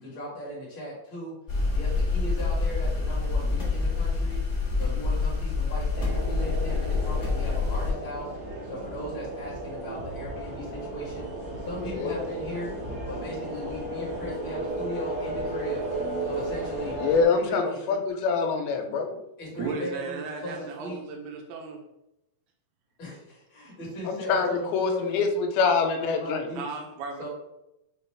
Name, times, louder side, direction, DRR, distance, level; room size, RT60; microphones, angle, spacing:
voice 1, 0.0-1.3 1.7-4.4 4.7-8.3 8.6-11.3 11.6-12.7 13.1-15.8 16.2-17.0 17.2-17.8 19.4-21.0 23.0-25.1 26.0-26.6 27.2-27.3, equal, 45° left, -6 dB, 1.8 m, -37 dB
sound 1, 1.5-7.9, left 3 dB, 65° left, 0.6 m, -26 dB
sound 2, 5.9-17.2, right 2 dB, 60° right, 1.0 m, -34 dB
voice 2, 11.9-12.3 17.0-19.2 24.1-26.4, left 5 dB, 85° left, 4 dB, 2.5 m, -25 dB
voice 3, 19.5-21.8 26.6-27.3, right 4 dB, 80° right, 2 dB, 2.2 m, -35 dB
6.6 x 2.5 x 3.2 m, 0.88 s
omnidirectional pair, 4.4 m